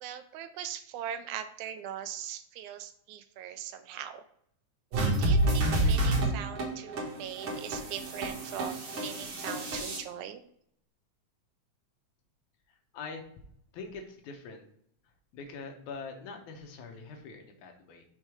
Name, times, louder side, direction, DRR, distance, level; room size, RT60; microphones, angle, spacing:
voice 1, 0.0-4.2 4.9-10.4, right 10 dB, 80° right, 10 dB, 2.0 m, -40 dB
sound 1, 4.9-10.0, right 1 dB, 55° right, 2.3 m, -29 dB
voice 2, 13.7-14.7 15.3-18.0, left 4 dB, 80° left, 4 dB, 2.4 m, -43 dB
6.2 x 3.9 x 4.8 m, 0.69 s
omnidirectional pair, 3.4 m